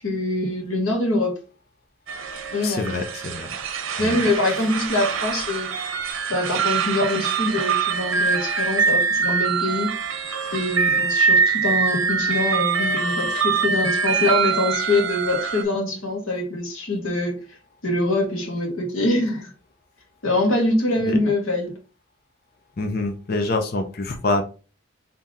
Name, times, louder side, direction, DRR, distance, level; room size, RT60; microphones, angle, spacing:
voice 1, 0.0-1.4 2.5-2.8 4.0-5.7 6.3-9.9 10.5-17.4 17.8-19.5 20.2-21.8, left 2 dB, 85° left, 1.4 m, -24 dB
sound 1, 2.1-15.6, right 5 dB, 80° right, 0.7 m, -24 dB
voice 2, 2.6-3.6 4.0-4.2 21.1-21.2 22.8-24.4, left 2 dB, 45° left, 0.6 m, -26 dB
3.6 x 2.8 x 4.1 m
head